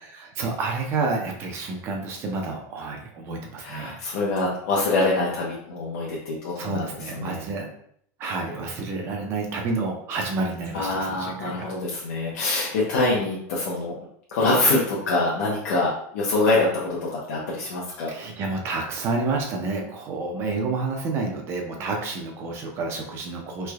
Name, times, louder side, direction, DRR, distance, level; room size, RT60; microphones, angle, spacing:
voice 1, 0.0-4.0 6.6-7.7 8.2-11.7 18.1-23.7, right 3 dB, 30° right, 1 dB, 0.4 m, -29 dB
voice 2, 3.6-6.9 7.1-7.5 10.7-13.9 14.3-18.1, left 2 dB, 70° left, -4 dB, 0.7 m, -25 dB
3.2 x 3.0 x 2.3 m, 0.67 s
supercardioid pair, 175°, 9 cm